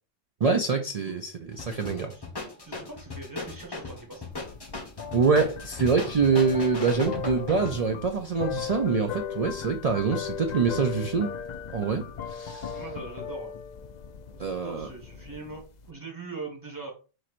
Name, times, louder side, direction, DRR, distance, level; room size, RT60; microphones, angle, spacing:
voice 1, 0.4-1.3 1.6-2.1 5.1-11.3 11.7-12.8 14.4-14.9, right 5 dB, 65° right, 0.3 m, -25 dB
sound 1, 1.5-7.8, left 3 dB, 20° left, 1.1 m, -37 dB
voice 2, 2.6-4.2 12.7-13.5 14.1-16.9, right 3 dB, 15° right, 1.4 m, -41 dB
sound 2, 4.3-15.9, left 7 dB, 80° left, 0.3 m, -38 dB
4.7 x 4.3 x 2.5 m
omnidirectional pair, 1.3 m